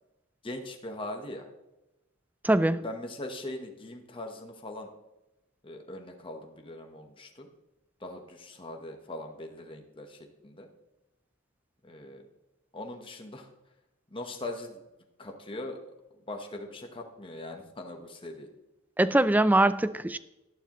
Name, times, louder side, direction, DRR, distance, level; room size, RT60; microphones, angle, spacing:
voice 1, 0.4-1.5 2.7-4.9 5.6-7.5 8.0-10.7 11.8-12.2 12.7-13.5 14.1-14.8 15.2-15.8 16.3-18.5, left 1 dB, 25° left, 3 dB, 1.1 m, -40 dB
voice 2, 2.4-2.8 19.0-20.2, right 1 dB, 10° right, 15 dB, 0.3 m, -22 dB
12.0 x 11.0 x 3.1 m, 0.96 s
head